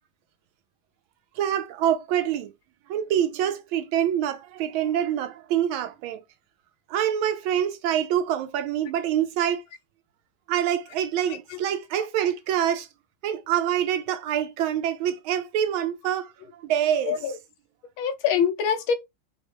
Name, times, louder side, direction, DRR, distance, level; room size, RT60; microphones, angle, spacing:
voice 1, 1.4-2.5 2.9-6.2 6.9-9.6 10.5-12.9 13.2-16.3 16.6-17.2, right 10 dB, 85° right, 1.4 m, -25 dB
voice 2, 11.3-11.6 12.0-12.1 17.0-17.4 18.0-18.9, left 7 dB, 75° left, 1.5 m, -25 dB
5.4 x 2.2 x 3.0 m
omnidirectional pair, 2.2 m